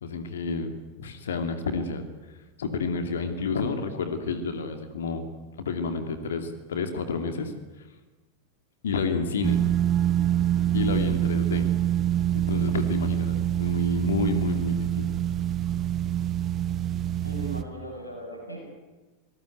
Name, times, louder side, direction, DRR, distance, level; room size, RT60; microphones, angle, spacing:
voice 1, 0.0-2.0 2.6-5.3 5.6-7.9 8.8-9.6 10.3-10.5 10.7-11.7 12.3-15.1, left 4 dB, 65° left, 8 dB, 2.6 m, -30 dB
sound 1, 9.4-17.6, right 11 dB, 30° right, 1.4 m, -25 dB
voice 2, 17.2-18.7, right 1 dB, 85° left, 1 dB, 7.5 m, -38 dB
27.5 x 19.5 x 9.3 m, 1.2 s
figure-of-eight pair, 90°, 0 cm